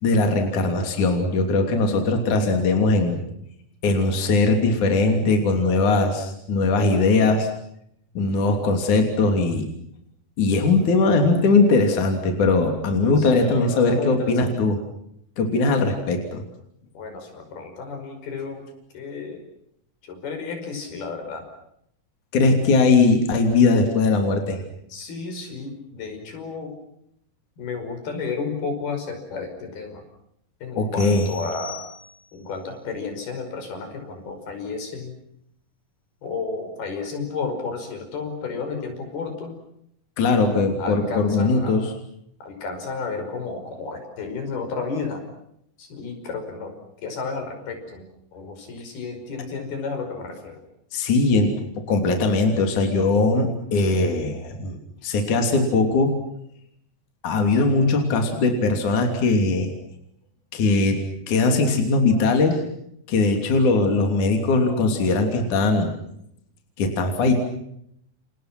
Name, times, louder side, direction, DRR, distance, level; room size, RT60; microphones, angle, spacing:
voice 1, 0.0-3.2 3.8-7.5 8.1-9.7 10.4-14.8 15.4-16.4 22.3-24.6 30.7-31.3 40.2-41.9 50.9-54.8 55.0-56.2 57.2-59.7 60.5-61.0 61.3-62.6 63.1-65.9 66.8-67.3, left 3 dB, 55° left, 4 dB, 4.4 m, -20 dB
voice 2, 13.2-14.6 17.0-18.7 18.9-19.4 20.0-21.4 24.9-26.7 27.6-30.0 30.6-31.8 32.3-35.2 36.2-39.5 40.8-41.8 42.4-45.2 45.8-46.7 47.0-50.6, left 4 dB, 85° left, 5 dB, 7.4 m, -32 dB
sound 1, 31.0-32.5, left 6 dB, 25° right, 5.8 m, -40 dB
29.5 x 29.5 x 6.1 m, 0.74 s
omnidirectional pair, 4.3 m